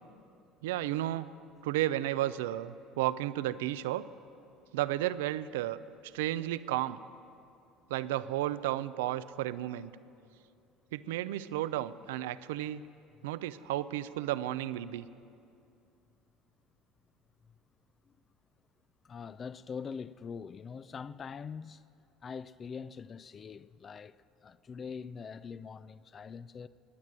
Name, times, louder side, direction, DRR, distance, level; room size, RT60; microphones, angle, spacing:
voice 1, 0.6-1.3 1.6-4.0 4.7-7.0 7.9-9.9 10.9-12.8 13.2-15.1, right 14 dB, 90° right, 0.4 m, -33 dB
voice 2, 19.0-21.8 22.2-26.7, left 6 dB, 35° left, 0.4 m, -43 dB
20.0 x 9.6 x 7.5 m
supercardioid pair, 85°, 0 cm